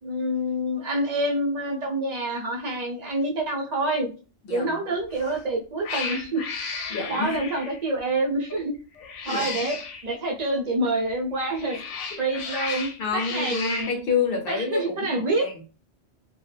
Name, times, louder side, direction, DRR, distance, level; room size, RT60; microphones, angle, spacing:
voice 1, 0.0-4.1 4.5-6.4 6.8-8.7 9.3-11.8 12.2-13.9 14.5-15.5, right 1 dB, 45° right, 1 dB, 0.6 m, -27 dB
voice 2, 4.4-4.8 6.9-7.4 9.3-9.7 11.6-12.2 13.0-15.6, left 5 dB, 60° left, 5 dB, 0.7 m, -29 dB
Cat, 5.1-5.4 5.8-7.8 9.0-10.0 11.4-14.0, left 5 dB, 90° left, 0.9 m, -34 dB
2.5 x 2.2 x 3.2 m, 0.35 s
omnidirectional pair, 1.2 m